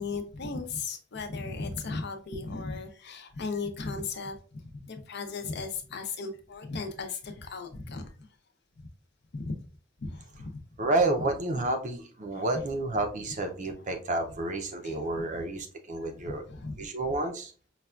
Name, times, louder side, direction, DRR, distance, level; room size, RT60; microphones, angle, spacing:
voice 1, 0.0-4.4 4.6-8.3 8.8-8.9 9.3-9.6 10.0-10.6 14.8-15.0 15.3-15.4 16.5-16.9, left 4 dB, 60° left, 6 dB, 0.6 m, -36 dB
voice 2, 10.8-16.4 16.8-17.5, right 2 dB, 40° right, 4 dB, 0.5 m, -30 dB
5.4 x 2.2 x 2.3 m, 0.39 s
head